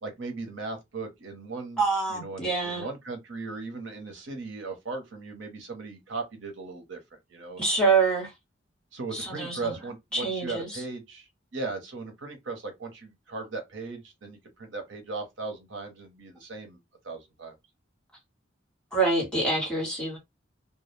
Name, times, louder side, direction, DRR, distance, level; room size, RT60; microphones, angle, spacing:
voice 1, 0.0-1.8 2.1-7.0 7.3-7.6 8.9-16.8 17.0-17.5, right 3 dB, 80° right, 0.8 m, -37 dB
voice 2, 1.8-2.8 7.6-8.3 9.1-9.7 10.1-10.8 18.9-20.2, right 4 dB, 5° left, 1.2 m, -26 dB
2.3 x 2.2 x 3.2 m
head